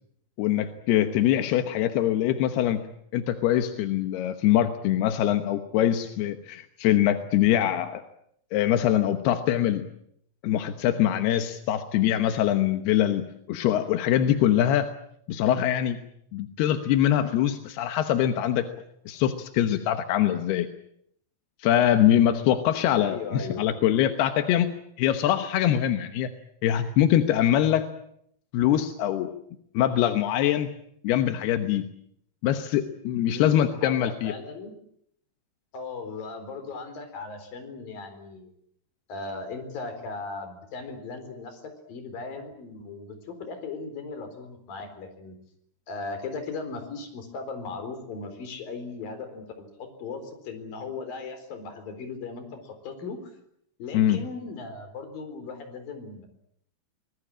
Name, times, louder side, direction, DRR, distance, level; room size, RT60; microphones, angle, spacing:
voice 1, 0.4-2.8 3.1-8.0 8.5-9.8 10.4-14.9 15.3-16.0 16.3-18.7 19.1-20.7 21.6-24.7 25.0-26.3 26.6-27.8 28.5-29.3 29.7-30.7 31.0-31.9 32.4-34.3 53.9-54.2, left 11 dB, 90° left, 8 dB, 3.2 m, -23 dB
voice 2, 23.0-23.7 33.1-34.7 35.7-38.5 39.1-45.4 45.9-53.3 53.8-56.3, left 4 dB, 60° left, 8 dB, 5.8 m, -38 dB
25.5 x 20.0 x 8.7 m, 0.71 s
omnidirectional pair, 4.5 m